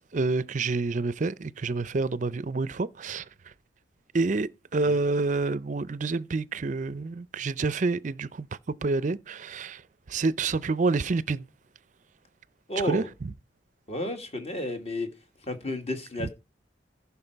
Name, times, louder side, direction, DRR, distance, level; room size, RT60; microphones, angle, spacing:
voice 1, 0.0-3.2 4.1-9.8 10.1-11.5 12.8-13.3 16.2-16.3, right 3 dB, 40° right, 0.5 m, -28 dB
voice 2, 12.7-13.1 13.9-15.1 15.4-16.3, left 1 dB, 35° left, 1.7 m, -32 dB
15.0 x 5.8 x 4.5 m
head